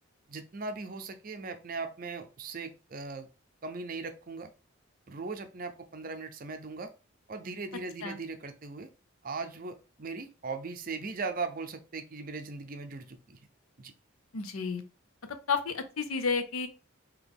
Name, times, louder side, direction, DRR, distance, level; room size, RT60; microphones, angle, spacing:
voice 1, 0.3-3.3 3.6-4.5 5.1-6.9 7.3-8.9 9.2-13.4 13.8-13.9, right 4 dB, 40° right, 8 dB, 0.5 m, -39 dB
voice 2, 14.3-14.8 15.5-16.7, left 5 dB, 80° left, 9 dB, 0.6 m, -31 dB
3.9 x 2.9 x 3.5 m, 0.33 s
head